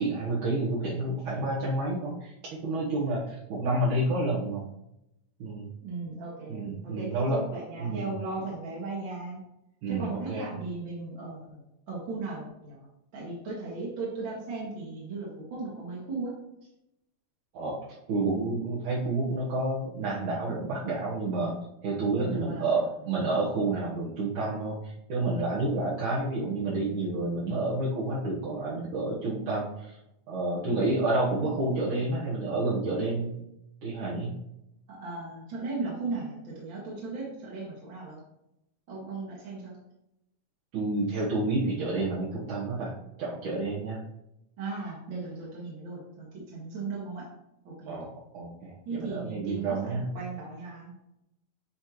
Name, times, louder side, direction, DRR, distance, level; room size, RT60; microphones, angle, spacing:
voice 1, 0.0-2.3 2.6-4.6 5.4-5.7 6.5-7.4 7.8-8.1 9.8-10.5 17.5-17.8 18.1-21.6 21.8-30.0 30.3-33.4 33.8-34.3 40.7-42.9 43.2-44.0 47.9-48.1 48.3-50.1, right 2 dB, 70° right, -8 dB, 2.6 m, -29 dB
voice 2, 5.8-9.4 9.9-11.6 11.9-12.8 13.1-16.3 22.2-22.9 34.9-38.2 38.9-39.8 44.6-47.2 47.6-48.0 48.8-51.1, right 3 dB, 50° right, -6 dB, 1.7 m, -37 dB
7.9 x 4.3 x 3.0 m, 0.85 s
omnidirectional pair, 3.7 m